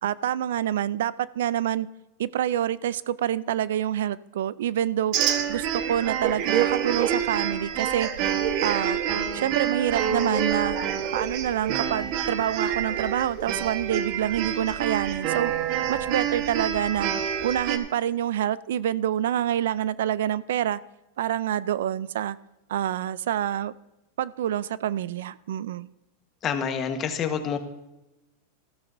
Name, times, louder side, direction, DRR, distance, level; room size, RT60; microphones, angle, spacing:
voice 1, 0.0-1.9 2.2-5.2 5.5-8.1 8.6-9.0 9.3-10.8 11.1-15.5 15.9-17.1 17.4-20.8 21.2-22.4 22.7-23.7 24.2-25.9, right 11 dB, 80° right, 19 dB, 0.4 m, -27 dB
sound 1, 5.1-17.8, right 8 dB, 50° right, 1.2 m, -27 dB
voice 2, 26.4-27.6, left 7 dB, 30° left, 7 dB, 1.3 m, -27 dB
13.5 x 13.0 x 2.6 m, 0.97 s
supercardioid pair, 130°, 0 cm